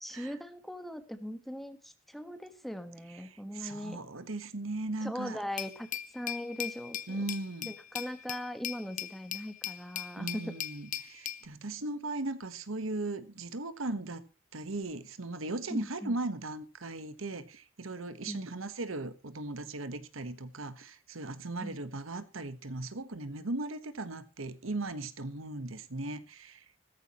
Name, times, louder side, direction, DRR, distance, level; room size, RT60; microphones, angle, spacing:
voice 1, 0.0-4.0 5.0-5.9 6.1-7.2 7.7-10.5 15.7-16.2 18.3-18.5 21.6-21.8, equal, ahead, 1.4 m, -40 dB
voice 2, 3.5-5.4 7.1-7.7 10.2-14.2 14.5-26.6, right 2 dB, 85° right, 1.3 m, -38 dB
Glass, 5.6-11.5, left 11 dB, 40° left, 0.8 m, -39 dB
15.5 x 14.0 x 3.0 m
head